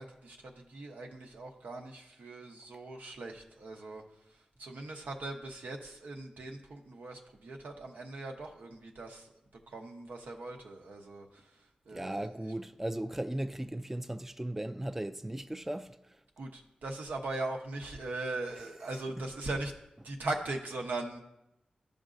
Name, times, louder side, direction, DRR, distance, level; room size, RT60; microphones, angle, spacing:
voice 1, 0.0-4.0 4.3-9.3 9.7-12.3 16.4-19.7 20.0-21.2, right 2 dB, 85° right, 0.9 m, -40 dB
voice 2, 11.9-16.2, right 1 dB, 10° right, 0.3 m, -37 dB
13.0 x 5.1 x 2.6 m
wide cardioid pair, 75°, 3 cm